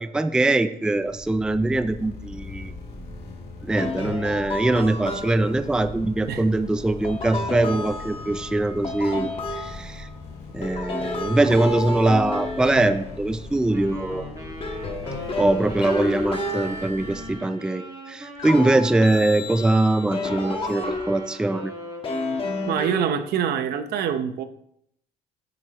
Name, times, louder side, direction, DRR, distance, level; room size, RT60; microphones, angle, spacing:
voice 1, 0.0-2.7 3.6-9.3 9.6-10.1 10.5-14.3 15.4-21.7, right 2 dB, 5° right, 10 dB, 0.4 m, -22 dB
sound 1, 0.8-17.3, left 3 dB, 80° left, 2.7 m, -40 dB
sound 2, 3.7-5.7 7.0-10.2 10.6-13.7 14.1-17.7 18.4-21.5 22.0-23.5, left 2 dB, 35° left, 1.3 m, -31 dB
Wind instrument woodwind instrument, 13.7-23.3, right 1 dB, 20° right, 1.7 m, -40 dB
voice 2, 22.7-24.4, right 8 dB, 70° right, 10 dB, 0.8 m, -25 dB
9.2 x 7.3 x 2.9 m, 0.71 s
cardioid pair, 110°, 17 cm